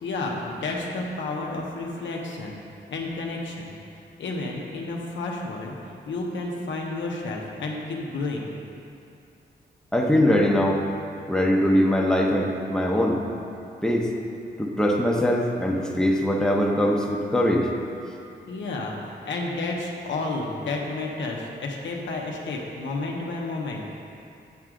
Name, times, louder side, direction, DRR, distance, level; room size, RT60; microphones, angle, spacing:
voice 1, 0.0-2.6 2.9-3.8 4.2-5.7 6.1-8.5 18.5-24.0, left 2 dB, 85° left, -1 dB, 0.9 m, -31 dB
voice 2, 9.9-10.8 11.3-13.2 13.8-14.1 14.6-17.7, left 1 dB, 5° left, -2 dB, 1.0 m, -22 dB
9.3 x 4.7 x 3.8 m, 2.6 s
cardioid pair, 70°, 19 cm